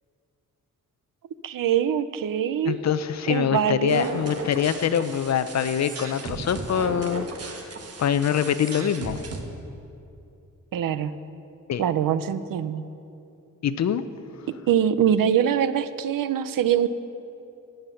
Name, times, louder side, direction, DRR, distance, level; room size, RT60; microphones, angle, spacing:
voice 1, 1.4-2.8 3.3-4.1 10.7-11.1 11.8-12.8 14.5-16.9, right 9 dB, 90° right, 13 dB, 0.6 m, -23 dB
voice 2, 2.7-7.6 8.0-9.2 11.7-11.8 13.6-14.0, left 8 dB, 55° left, 12 dB, 0.5 m, -24 dB
sound 1, 3.9-9.4, right 3 dB, 50° right, 1.3 m, -36 dB
19.0 x 8.0 x 5.7 m, 2.7 s
wide cardioid pair, 160°, 32 cm